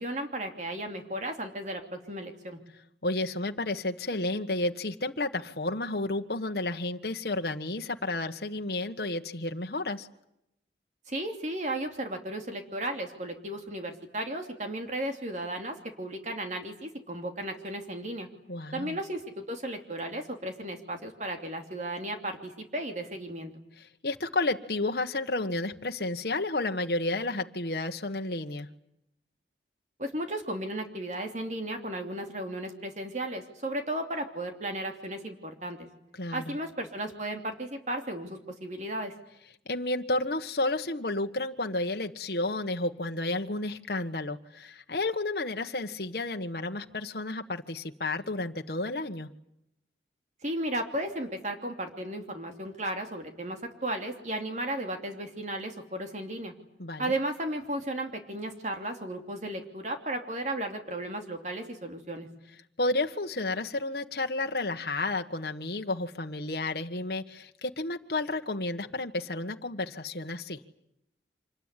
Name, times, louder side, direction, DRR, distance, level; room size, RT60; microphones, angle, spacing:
voice 1, 0.0-2.6 11.1-18.3 18.7-23.5 30.0-35.8 36.3-39.1 50.4-56.5 57.0-62.3, right 1 dB, 40° right, 4 dB, 2.9 m, -35 dB
voice 2, 3.0-10.1 18.5-19.0 23.8-28.7 36.2-36.6 39.6-49.3 56.8-57.0 62.8-70.6, left 2 dB, 60° left, 4 dB, 1.4 m, -31 dB
26.5 x 21.0 x 9.9 m, 0.79 s
head